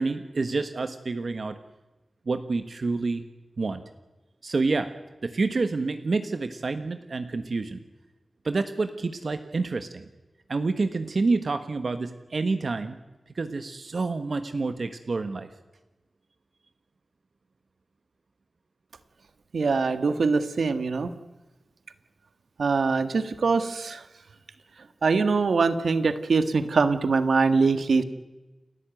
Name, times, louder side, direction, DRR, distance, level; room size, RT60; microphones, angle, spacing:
voice 1, 0.0-1.6 2.3-3.2 3.6-3.8 4.4-4.9 5.2-7.8 8.4-10.1 10.5-13.0 13.3-15.5, right 3 dB, 60° right, 9 dB, 1.3 m, -28 dB
voice 2, 19.5-21.1 22.6-24.0 25.0-28.0, right 4 dB, 85° right, 11 dB, 1.5 m, -23 dB
29.0 x 13.5 x 9.1 m, 1.1 s
wide cardioid pair, 105°, 0 cm